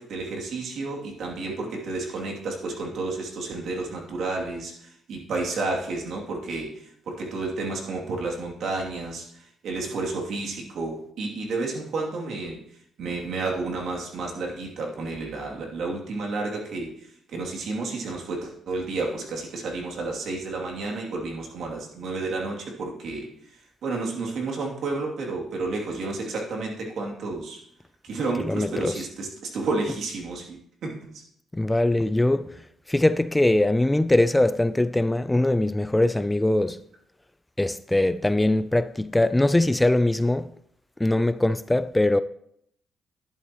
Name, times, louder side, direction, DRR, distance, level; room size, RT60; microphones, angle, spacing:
voice 1, 0.0-12.6 13.0-23.3 23.8-27.6 28.0-31.2, right 3 dB, 70° right, 2.7 m, -31 dB
voice 2, 28.4-28.9 31.5-32.5 32.9-36.8 37.6-40.5 41.0-42.2, left 1 dB, 10° left, 0.4 m, -22 dB
11.0 x 11.0 x 3.0 m
cardioid pair, 90°, 0 cm